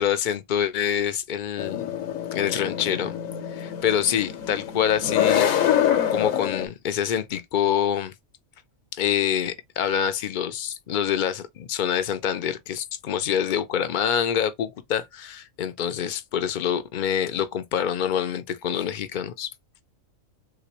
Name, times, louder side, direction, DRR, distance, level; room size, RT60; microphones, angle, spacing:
voice 1, 0.0-1.9 2.3-3.1 3.5-5.5 6.1-8.1 8.9-19.5, left 9 dB, 70° left, 0.4 m, -26 dB
sound 1, 1.6-6.7, left 9 dB, 90° left, 1.1 m, -25 dB
3.3 x 2.9 x 2.9 m
omnidirectional pair, 1.3 m